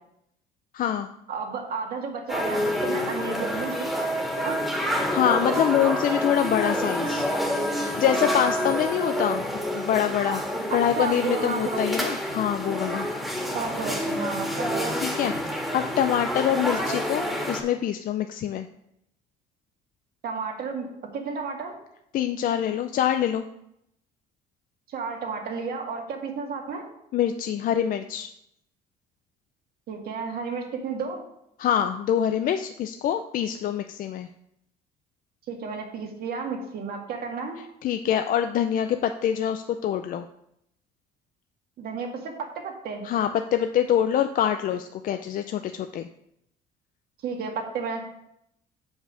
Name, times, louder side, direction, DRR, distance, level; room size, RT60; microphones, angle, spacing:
voice 1, 0.7-1.1 5.1-7.3 7.7-9.5 9.7-10.4 10.7-13.1 15.0-18.7 22.1-23.5 27.1-28.3 31.6-34.3 37.8-40.3 43.0-46.1, left 10 dB, 55° left, 7 dB, 0.5 m, -25 dB
voice 2, 1.3-4.6 10.7-11.9 13.5-15.0 20.2-21.7 24.9-26.8 29.9-31.2 35.5-37.6 41.8-43.1 47.2-48.0, right 5 dB, 65° right, 2 dB, 1.9 m, -32 dB
sound 1, 2.3-17.6, equal, ahead, 1.8 m, -28 dB
6.9 x 5.4 x 6.2 m, 0.78 s
cardioid pair, 110°, 17 cm